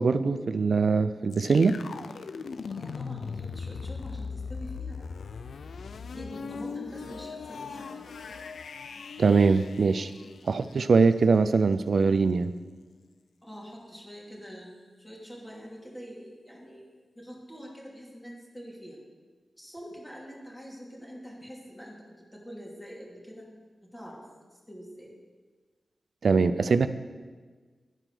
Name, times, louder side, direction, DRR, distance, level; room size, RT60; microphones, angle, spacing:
voice 1, 0.0-1.8 9.2-10.1 10.4-12.5 26.2-26.9, right 4 dB, 70° right, 12 dB, 0.4 m, -22 dB
sound 1, 1.3-11.1, left 5 dB, 85° left, 0.4 m, -39 dB
voice 2, 2.7-5.1 6.1-8.3 13.4-16.8 17.2-19.0 19.6-23.5 23.8-24.2 24.5-25.1, equal, 10° left, -3 dB, 2.6 m, -45 dB
10.5 x 4.5 x 6.1 m, 1.4 s
cardioid pair, 60°, 0 cm